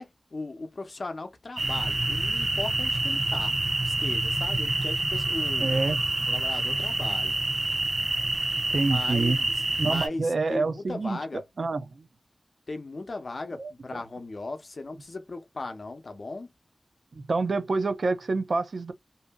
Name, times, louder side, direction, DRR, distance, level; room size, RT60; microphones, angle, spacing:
voice 1, 0.0-3.6 3.8-5.8 6.3-7.3 8.8-11.4 12.7-16.5, left 2 dB, 65° left, 0.6 m, -37 dB
sound 1, 1.6-10.1, right 2 dB, 60° right, 0.9 m, -27 dB
voice 2, 5.6-6.0 8.7-9.4 9.8-12.1 13.6-13.7 17.1-18.9, right 3 dB, 80° right, 0.5 m, -27 dB
2.6 x 2.6 x 2.2 m
cardioid pair, 45°, 0 cm